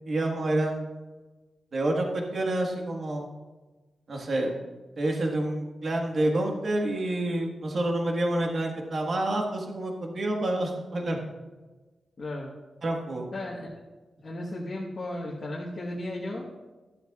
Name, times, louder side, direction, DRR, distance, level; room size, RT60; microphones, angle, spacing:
voice 1, 0.1-0.9 1.7-3.3 4.1-4.5 5.0-11.3 12.8-13.3, right 1 dB, 45° right, 1 dB, 1.5 m, -28 dB
voice 2, 12.2-12.5 13.3-13.7 14.2-16.5, left 1 dB, 40° left, -3 dB, 1.3 m, -35 dB
13.0 x 12.0 x 2.4 m, 1.2 s
wide cardioid pair, 165°, 0 cm